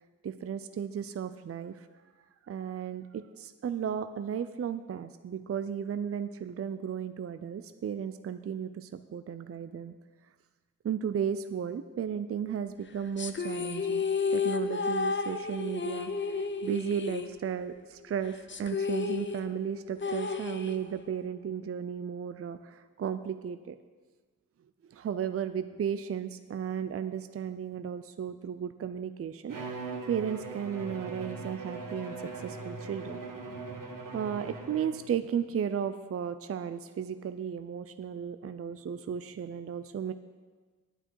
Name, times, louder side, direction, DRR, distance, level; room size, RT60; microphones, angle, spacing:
voice 1, 0.2-1.9 2.5-9.9 10.8-14.0 14.3-23.8 24.9-29.6 30.1-32.1 32.4-33.2 34.1-40.1, right 8 dB, 45° right, 11 dB, 0.5 m, -34 dB
sound 1, 13.2-17.8 18.1-18.2 18.5-21.1, left 5 dB, 35° left, 0.7 m, -32 dB
Bowed string instrument, 29.5-35.1, right 3 dB, 70° right, 1.2 m, -40 dB
9.0 x 8.9 x 4.6 m, 1.4 s
cardioid pair, 55°, 34 cm